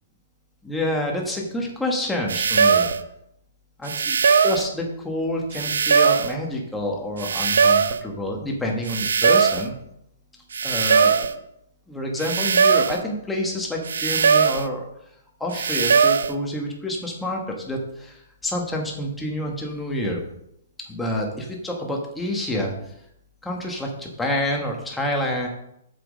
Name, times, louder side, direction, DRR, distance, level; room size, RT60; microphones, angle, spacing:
voice 1, 0.6-2.9 3.8-3.9 4.4-9.7 10.6-11.3 11.9-14.9 15.4-20.2 20.9-22.7 23.4-25.5, left 1 dB, 5° left, -1 dB, 1.3 m, -28 dB
sound 1, 2.3-3.0 3.9-4.7 5.5-6.4 7.2-8.0 8.9-9.7 10.5-11.3 12.2-13.0 13.9-14.7 15.5-16.3, right 6 dB, 85° right, 0.6 m, -19 dB
8.0 x 6.1 x 5.1 m, 0.77 s
hypercardioid pair, 170°, 0 cm